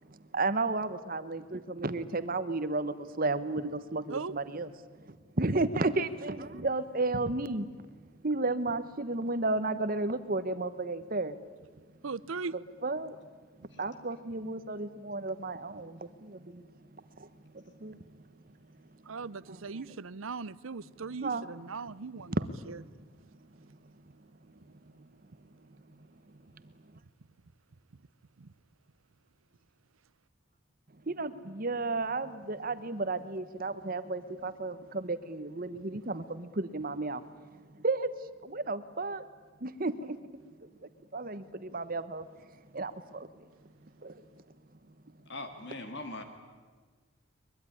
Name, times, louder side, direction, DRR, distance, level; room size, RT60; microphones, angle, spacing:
voice 1, 0.1-7.7 8.2-11.4 12.8-13.2 13.6-16.6 16.9-18.0 18.9-19.0 19.5-19.6 19.9-20.0 21.2-21.4 22.3-22.4 23.6-23.9 24.8-25.1 25.6-26.0 26.3-27.0 31.0-37.2 37.5-38.1 38.4-39.2 39.6-40.2 40.6-40.7 41.1-42.3 42.7-43.7 44.0-44.2, right 2 dB, 45° right, 1.1 m, -33 dB
voice 2, 12.0-12.6 19.0-22.3 22.7-22.8 28.4-28.5, right 4 dB, 80° right, 0.7 m, -39 dB
voice 3, 45.3-46.2, left 2 dB, 55° left, 2.0 m, -41 dB
22.5 x 22.5 x 10.0 m
head